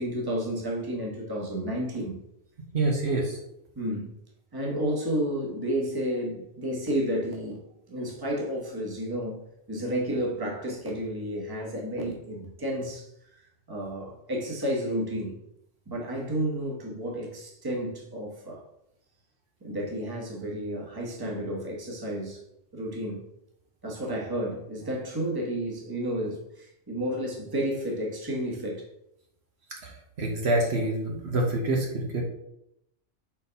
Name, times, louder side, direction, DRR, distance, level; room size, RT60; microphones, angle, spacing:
voice 1, 0.0-2.2 3.7-4.1 4.5-7.6 7.9-9.4 9.7-13.1 13.7-15.4 15.9-18.7 19.6-22.4 22.7-23.2 23.8-28.9, equal, 20° right, 1.2 m, -31 dB
voice 2, 2.7-3.4 29.8-29.9 30.2-32.2, right 2 dB, 60° right, 1.3 m, -26 dB
4.5 x 3.9 x 5.5 m
omnidirectional pair, 1.3 m